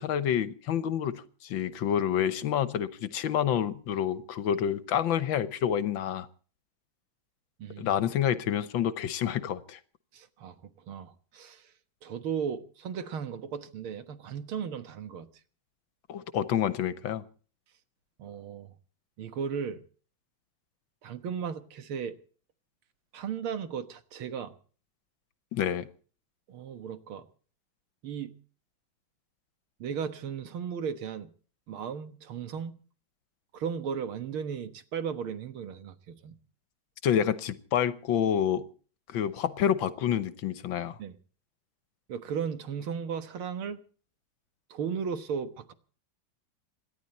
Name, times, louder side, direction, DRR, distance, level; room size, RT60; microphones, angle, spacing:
voice 1, 0.0-6.3 7.8-9.8 16.1-17.2 25.5-25.9 37.0-38.6 39.1-41.0, left 9 dB, 70° left, 1.6 m, -28 dB
voice 2, 10.1-10.6 10.9-11.7 12.0-15.3 18.2-18.7 19.2-19.8 21.0-22.1 23.1-24.5 26.5-27.2 28.0-28.4 29.8-31.3 31.7-32.8 33.5-36.4 41.0-41.2 42.1-43.8 44.7-45.7, right 7 dB, 85° right, 2.2 m, -35 dB
27.0 x 11.5 x 4.2 m
omnidirectional pair, 2.3 m